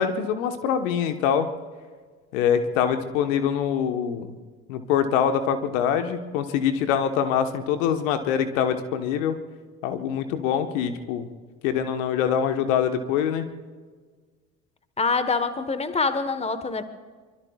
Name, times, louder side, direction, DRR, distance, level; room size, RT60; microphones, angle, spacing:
voice 1, 0.0-1.5 2.3-4.3 4.7-9.4 9.8-11.3 11.6-13.5, left 8 dB, 65° left, 8 dB, 1.4 m, -24 dB
voice 2, 15.0-16.8, left 4 dB, 15° left, 11 dB, 1.3 m, -25 dB
24.5 x 24.5 x 2.4 m, 1.5 s
figure-of-eight pair, 60°, 41 cm